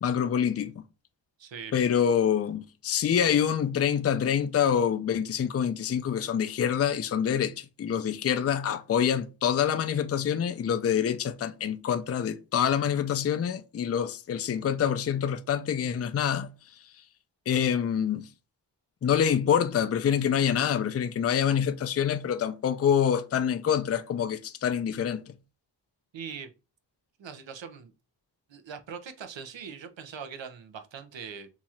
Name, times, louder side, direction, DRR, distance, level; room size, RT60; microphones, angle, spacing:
voice 1, 0.0-0.7 1.7-16.5 17.5-18.2 19.0-25.3, left 8 dB, 35° left, 0.4 m, -26 dB
voice 2, 1.4-1.7 26.1-26.5 27.2-27.9 28.5-31.5, right 6 dB, 70° right, 0.7 m, -41 dB
2.9 x 2.4 x 4.1 m
wide cardioid pair, 75°, 46 cm